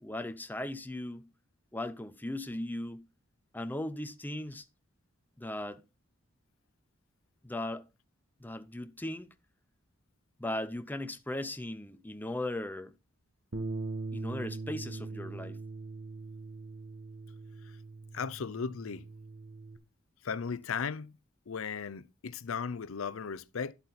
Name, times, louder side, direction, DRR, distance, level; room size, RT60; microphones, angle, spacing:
voice 1, 0.0-1.2 1.7-3.1 3.5-4.7 5.4-5.8 7.4-7.9 8.4-9.3 10.4-12.9 14.1-15.6, left 1 dB, 10° left, 0.7 m, -37 dB
Bass guitar, 13.5-19.8, right 3 dB, 85° right, 1.5 m, -41 dB
voice 2, 18.1-19.1 20.2-21.1 21.5-23.7, left 6 dB, 70° left, 0.6 m, -36 dB
11.0 x 8.0 x 4.1 m
head